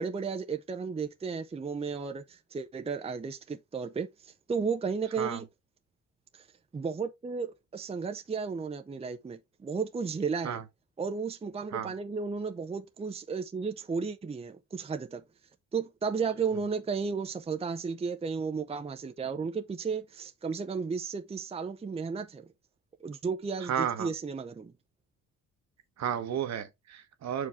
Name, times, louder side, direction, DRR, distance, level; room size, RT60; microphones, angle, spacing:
voice 1, 0.0-5.5 6.3-6.4 6.7-10.6 11.0-15.2 15.7-22.5 23.0-24.7, right 5 dB, 20° right, 0.6 m, -34 dB
voice 2, 23.6-24.1 26.0-27.5, right 9 dB, 60° right, 1.1 m, -32 dB
5.9 x 4.8 x 3.5 m
cardioid pair, 90°, 30 cm